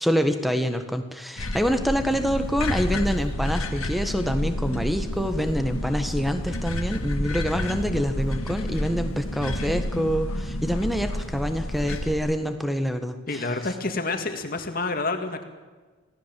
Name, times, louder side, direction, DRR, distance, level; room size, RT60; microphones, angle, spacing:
voice 1, 0.0-13.5, equal, ahead, 8 dB, 1.5 m, -26 dB
sound 1, 1.4-12.1, left 1 dB, 90° left, 2.0 m, -30 dB
voice 2, 13.3-15.4, left 3 dB, 40° left, 6 dB, 2.3 m, -28 dB
26.5 x 17.5 x 7.7 m, 1.3 s
head